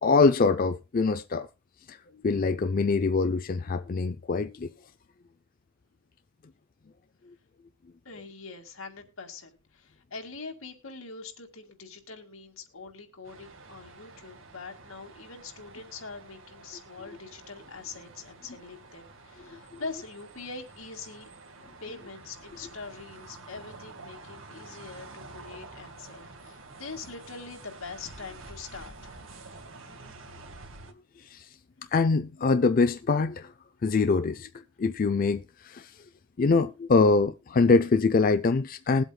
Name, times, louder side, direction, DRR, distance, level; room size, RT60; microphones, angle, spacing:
voice 1, 0.0-1.5 1.9-2.0 2.2-4.7 19.5-19.6 31.2-31.5 31.9-33.5 33.8-34.5 34.8-35.9 36.4-39.0, left 4 dB, 45° left, 0.4 m, -24 dB
voice 2, 8.1-21.3 21.8-29.2, left 4 dB, 85° left, 2.2 m, -43 dB
sound 1, 13.2-30.9, right 3 dB, 70° right, 1.8 m, -48 dB
21.0 x 8.0 x 2.3 m
head